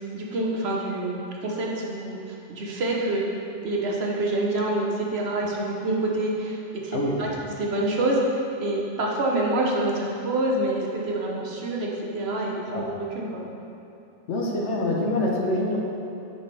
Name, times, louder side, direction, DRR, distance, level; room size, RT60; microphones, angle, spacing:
voice 1, 0.1-3.3 3.6-13.5, right 2 dB, 60° right, -2 dB, 1.2 m, -27 dB
voice 2, 6.9-7.4 12.7-12.8 14.3-15.8, left 1 dB, 75° left, -1 dB, 1.1 m, -25 dB
7.7 x 5.2 x 3.3 m, 2.8 s
omnidirectional pair, 1.2 m